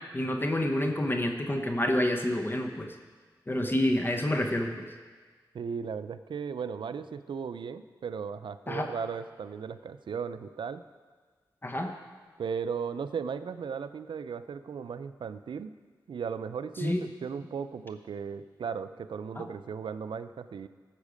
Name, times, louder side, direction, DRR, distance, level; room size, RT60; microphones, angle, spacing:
voice 1, 0.1-2.9 3.5-4.9 8.7-8.9 11.6-11.9 16.8-17.0 19.4-19.5, left 1 dB, 25° left, 4 dB, 1.0 m, -28 dB
voice 2, 5.5-10.8 12.4-15.7 16.1-20.7, right 6 dB, 85° right, 12 dB, 0.4 m, -36 dB
13.5 x 7.3 x 5.1 m, 1.5 s
cardioid pair, 65°, 8 cm